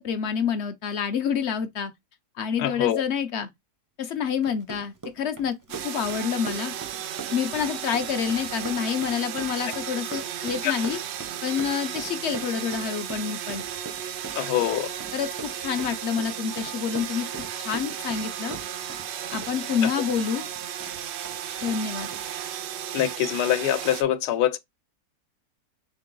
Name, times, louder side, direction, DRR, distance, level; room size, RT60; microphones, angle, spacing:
voice 1, 0.0-1.9 2.4-3.5 4.0-5.6 5.8-6.7 7.3-11.0 11.4-13.6 15.1-17.3 17.6-18.6 19.3-20.5 21.6-22.1, left 7 dB, 65° left, 0.7 m, -28 dB
voice 2, 2.6-3.0 10.6-10.7 14.4-14.9 19.8-19.9 22.9-24.6, left 11 dB, 90° left, 1.1 m, -24 dB
Run, 4.3-19.1 19.3-20.9 21.2-21.4 21.6-21.8 22.1-22.2, right 4 dB, 30° right, 0.3 m, -40 dB
sound 1, 5.7-24.0, right 9 dB, 85° right, 0.5 m, -34 dB
3.8 x 3.7 x 3.7 m
omnidirectional pair, 1.7 m